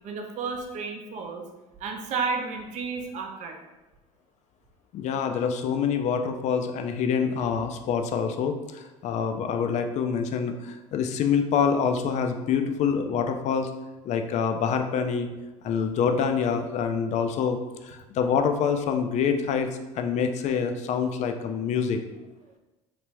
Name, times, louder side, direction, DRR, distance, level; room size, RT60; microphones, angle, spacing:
voice 1, 0.0-1.4 1.8-3.6, right 4 dB, 45° right, 3 dB, 0.6 m, -32 dB
voice 2, 4.9-13.7 14.0-15.3 15.6-17.6 17.8-19.7 20.0-22.0, left 6 dB, 45° left, 6 dB, 0.4 m, -26 dB
3.3 x 2.5 x 3.1 m, 1.1 s
hypercardioid pair, 70°, 17 cm